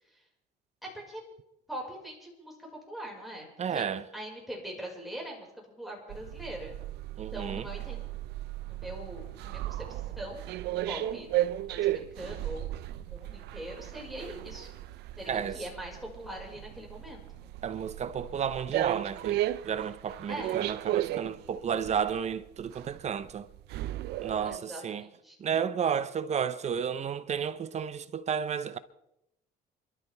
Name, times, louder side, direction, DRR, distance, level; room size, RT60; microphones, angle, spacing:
voice 1, 0.8-1.2 1.7-3.8 4.1-6.8 7.3-8.2 8.7-10.6 10.8-11.4 11.6-12.7 13.0-14.7 15.2-17.2 20.3-20.7 24.4-25.4, right 1 dB, ahead, 5.4 m, -42 dB
voice 2, 3.6-4.0 7.2-7.7 15.3-15.6 17.6-23.5 24.2-25.1 25.4-28.8, right 7 dB, 40° right, 0.8 m, -32 dB
sound 1, 6.1-24.6, right 14 dB, 80° right, 0.6 m, -35 dB
28.5 x 12.5 x 3.5 m
cardioid pair, 110°, 17 cm